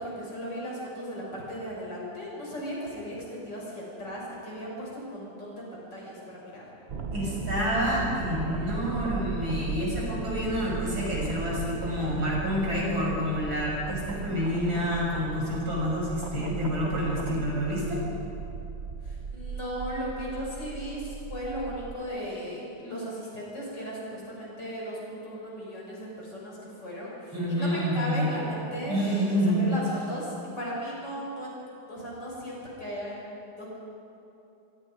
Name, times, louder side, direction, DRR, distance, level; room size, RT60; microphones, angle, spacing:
voice 1, 0.0-6.6 19.0-31.6 31.9-33.7, equal, 55° left, -4 dB, 6.9 m, -36 dB
sound 1, 6.9-22.0, right 4 dB, 40° right, 0.9 m, -36 dB
voice 2, 7.1-18.0 27.3-28.3 28.9-29.9, equal, 65° right, -4 dB, 7.0 m, -28 dB
25.5 x 23.5 x 5.1 m, 2.8 s
omnidirectional pair, 2.3 m